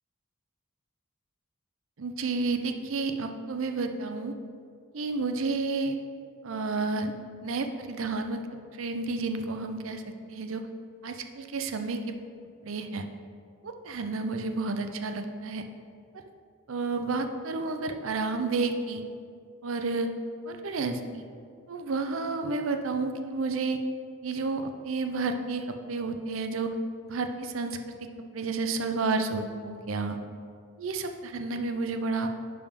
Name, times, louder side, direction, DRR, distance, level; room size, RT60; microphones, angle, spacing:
voice 1, 2.0-4.3 4.9-6.0 6.4-7.1 7.4-8.4 8.7-10.0 10.3-10.6 11.0-12.1 12.6-13.0 13.6-15.6 16.7-19.0 19.6-20.1 20.5-21.2 21.7-23.8 24.2-26.7 27.0-28.0 28.3-30.2 30.8-32.3, right 3 dB, 75° right, 7 dB, 0.5 m, -31 dB
10.5 x 3.5 x 5.1 m, 2.2 s
head